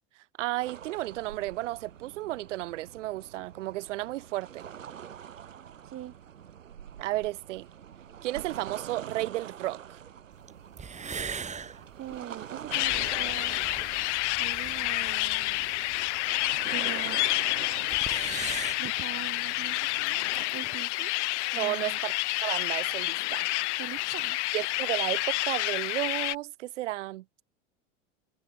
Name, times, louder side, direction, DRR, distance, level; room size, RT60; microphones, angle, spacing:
voice 1, 0.4-4.7 7.0-7.7 8.2-10.0 21.6-23.5 24.5-27.2, right 16 dB, 70° right, 2.9 m, -33 dB
sound 1, 0.6-20.5, right 9 dB, 90° right, 4.4 m, -45 dB
voice 2, 5.8-6.2 12.0-13.6 14.4-15.7 16.6-17.8 18.8-20.2 20.5-21.1 21.5-22.0 23.7-24.4, right 12 dB, 35° right, 3.1 m, -42 dB
sound 2, 10.5-10.6 10.8-16.8 17.0-17.1 17.3-17.4 17.7-18.8, right 6 dB, 20° right, 1.9 m, -41 dB
sound 3, 12.7-26.4, left 21 dB, 65° left, 0.8 m, -29 dB
hypercardioid pair, 100°, 37 cm